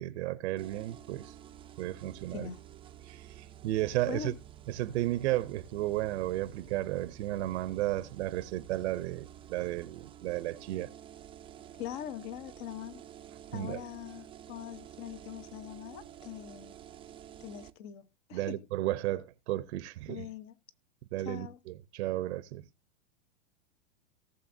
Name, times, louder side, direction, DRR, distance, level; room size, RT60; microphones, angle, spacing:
voice 1, 0.0-1.4 1.8-2.5 3.0-4.3 4.7-10.9 13.5-13.8 18.3-20.3 21.1-22.7, right 15 dB, 70° right, 0.8 m, -33 dB
sound 1, 0.6-17.7, right 11 dB, 15° right, 0.5 m, -51 dB
voice 2, 11.8-13.0 13.5-16.7 17.4-18.6 20.1-20.5 21.2-21.6, left 10 dB, 45° left, 1.1 m, -42 dB
18.0 x 6.8 x 2.7 m
supercardioid pair, 135°, 36 cm